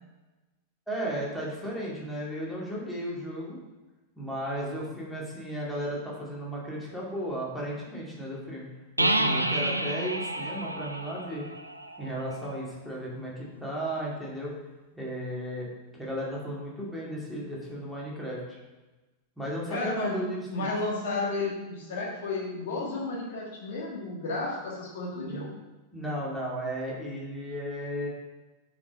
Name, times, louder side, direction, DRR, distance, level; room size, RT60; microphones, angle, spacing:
voice 1, 0.9-3.6 4.2-8.7 9.0-11.4 12.0-14.5 14.9-18.6 19.4-20.7 25.2-25.5 25.9-28.1, equal, 5° left, -5 dB, 2.3 m, -35 dB
sound 1, 9.0-12.6, right 1 dB, 85° right, 0.4 m, -29 dB
voice 2, 19.7-20.2 20.5-25.5, left 3 dB, 55° left, -3 dB, 1.7 m, -32 dB
6.8 x 5.1 x 5.2 m, 1.1 s
figure-of-eight pair, 90°, 0 cm